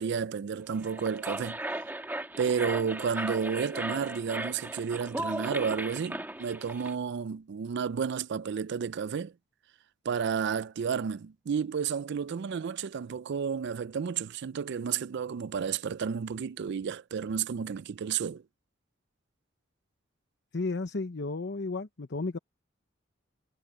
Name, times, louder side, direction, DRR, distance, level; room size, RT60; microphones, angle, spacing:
voice 1, 0.0-1.6 2.4-9.3 10.0-18.4, right 6 dB, 60° right, 0.4 m, -31 dB
sound 1, 0.7-6.9, right 1 dB, 10° right, 1.9 m, -37 dB
voice 2, 20.5-22.4, left 3 dB, 60° left, 0.9 m, -33 dB
head